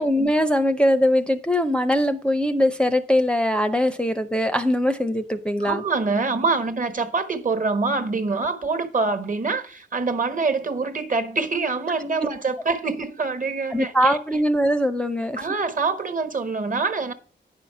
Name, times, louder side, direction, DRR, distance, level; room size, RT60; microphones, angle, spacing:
voice 1, 0.0-5.8 13.7-15.5, equal, 5° left, 0.6 m, -21 dB
voice 2, 5.6-14.2 15.4-17.1, right 4 dB, 40° right, 1.4 m, -25 dB
9.8 x 5.7 x 5.6 m
wide cardioid pair, 130°, 20 cm